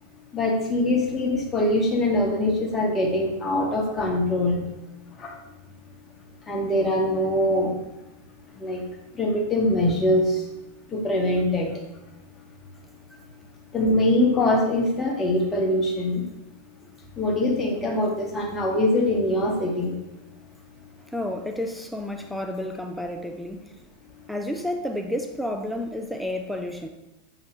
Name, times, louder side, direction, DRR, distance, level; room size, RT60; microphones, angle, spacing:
voice 1, 0.3-4.6 6.5-7.7 8.6-8.8 9.2-10.3 10.9-11.7 13.7-16.2 17.2-19.9, left 1 dB, 15° left, -1 dB, 1.0 m, -23 dB
voice 2, 21.1-23.6 24.3-26.9, left 1 dB, ahead, 3 dB, 0.3 m, -30 dB
5.5 x 2.8 x 3.1 m, 0.97 s
figure-of-eight pair, 90°, 0 cm